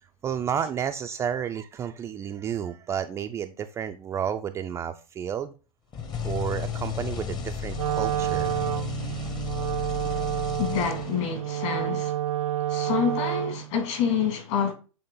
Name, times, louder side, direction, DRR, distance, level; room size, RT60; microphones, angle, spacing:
voice 1, 0.2-5.5 6.2-8.6, right 8 dB, 15° right, 0.3 m, -31 dB
sound 1, 5.9-11.4, left 7 dB, 25° left, 0.8 m, -33 dB
Wind instrument woodwind instrument, 7.7-13.7, right 12 dB, 75° right, 0.5 m, -29 dB
voice 2, 10.6-12.2 12.7-14.7, left 7 dB, 55° left, 2.4 m, -27 dB
7.8 x 3.4 x 3.8 m
hypercardioid pair, 120°, 18 cm